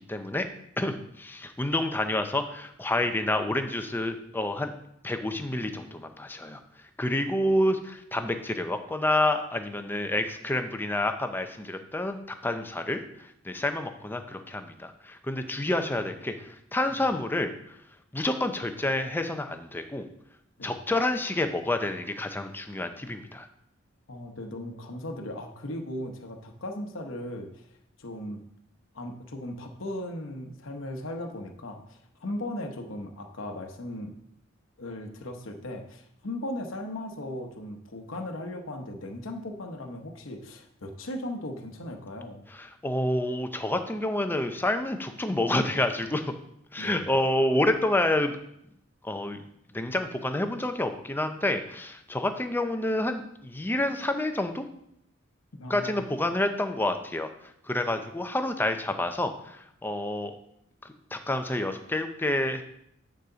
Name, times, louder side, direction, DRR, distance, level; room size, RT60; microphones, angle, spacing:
voice 1, 0.1-0.5 0.8-4.7 5.0-6.6 7.0-12.2 12.4-17.8 18.1-20.1 20.6-23.5 42.5-46.3 46.7-48.4 49.0-49.4 49.7-54.7 55.7-57.3 57.6-60.4 60.8-62.6, left 1 dB, 10° left, 7 dB, 0.5 m, -28 dB
voice 2, 24.1-27.7 28.0-28.4 28.9-34.1 34.8-42.5 46.8-47.1 55.5-56.0, left 1 dB, 65° left, 3 dB, 0.9 m, -37 dB
9.3 x 4.9 x 3.9 m, 0.75 s
head